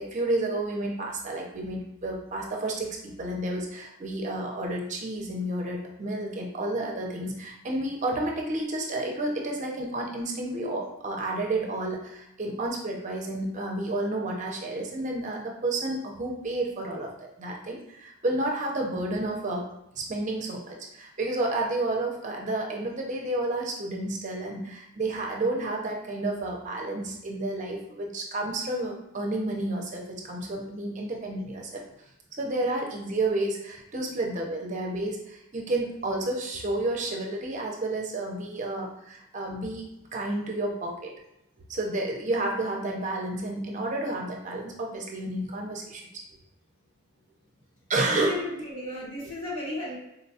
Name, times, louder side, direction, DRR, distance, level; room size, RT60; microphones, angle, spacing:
voice 1, 0.0-17.1 17.4-19.6 20.0-31.8 32.4-39.9 40.1-41.1 41.7-46.1 47.9-48.4, right 2 dB, 35° right, 0 dB, 0.5 m, -31 dB
voice 2, 48.0-50.0, left 1 dB, 85° left, -5 dB, 1.3 m, -34 dB
3.9 x 2.2 x 2.7 m, 0.83 s
head